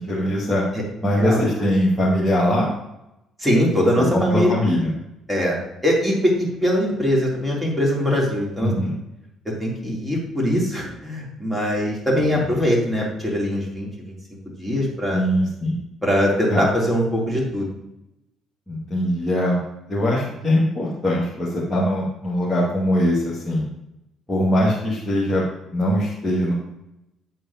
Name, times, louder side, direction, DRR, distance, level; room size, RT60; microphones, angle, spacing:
voice 1, 0.1-0.6 1.0-2.7 4.0-4.9 8.6-8.9 15.1-15.8 16.5-16.6 18.7-19.6 19.9-23.6 24.3-25.4 25.7-26.5, equal, 15° left, -8 dB, 2.3 m, -21 dB
voice 2, 3.4-4.5 5.3-5.6 5.8-8.9 9.6-14.1 14.6-15.2 16.0-17.7, equal, 5° right, -4 dB, 3.3 m, -22 dB
8.8 x 7.9 x 2.9 m, 0.88 s
figure-of-eight pair, 45°, 0 cm